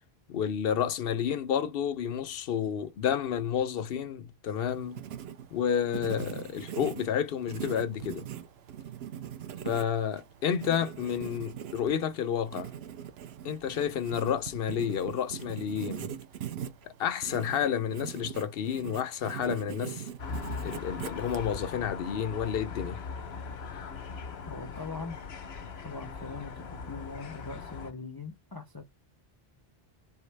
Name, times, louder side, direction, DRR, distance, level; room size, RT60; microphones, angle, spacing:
voice 1, 0.3-5.0 5.5-8.3 9.6-12.7 13.4-16.1 16.8-20.1 20.6-23.0, left 8 dB, 70° left, 0.8 m, -30 dB
Writing, 4.6-21.7, right 9 dB, 80° right, 0.9 m, -41 dB
sound 1, 20.2-27.9, left 5 dB, 85° left, 1.1 m, -40 dB
voice 2, 24.5-25.2 25.8-28.8, left 4 dB, 25° left, 0.6 m, -41 dB
4.5 x 3.0 x 3.3 m
omnidirectional pair, 1.0 m